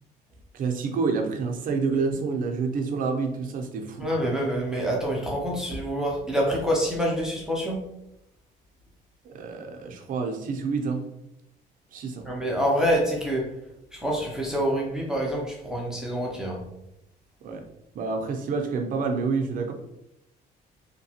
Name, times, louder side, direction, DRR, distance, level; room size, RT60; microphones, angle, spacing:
voice 1, 0.5-4.1 9.3-11.0 11.9-12.3 17.4-17.6 17.9-19.7, right 4 dB, 55° right, 3 dB, 0.6 m, -28 dB
voice 2, 4.0-7.8 12.3-13.4 13.9-16.6, equal, 5° right, -3 dB, 0.6 m, -26 dB
2.8 x 2.2 x 2.7 m, 0.83 s
cardioid pair, 110°, 17 cm